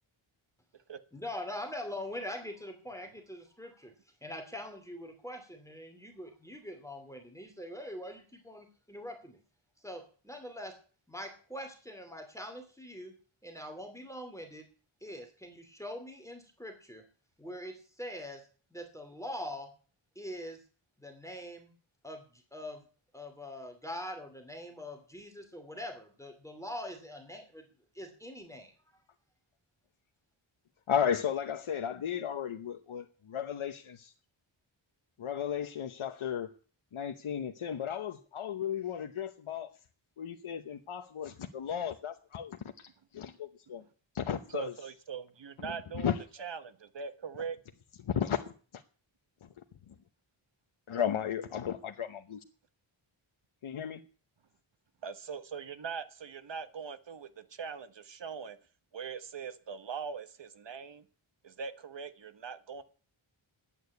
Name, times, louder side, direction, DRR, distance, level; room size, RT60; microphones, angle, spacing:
voice 1, 1.1-3.9 4.2-9.4 9.8-10.8 11.1-13.1 13.4-14.6 15.0-17.0 17.4-18.4 18.7-19.7 20.2-20.6 21.0-21.7 22.0-22.2 22.5-22.8 23.1-27.6 27.9-28.7, left 1 dB, 5° left, 2.5 m, -43 dB
voice 2, 30.9-34.1 35.2-36.5 36.9-39.7 40.2-43.8 44.1-44.7 45.6-46.2 48.0-48.4 48.7-48.8 49.4-49.5 50.9-52.4 53.6-54.0, left 8 dB, 75° left, 1.0 m, -34 dB
voice 3, 44.5-46.1 46.4-47.6 55.0-58.6 58.9-61.0 61.4-62.8, right 6 dB, 60° right, 1.4 m, -41 dB
11.5 x 8.9 x 8.2 m
wide cardioid pair, 125°, 49 cm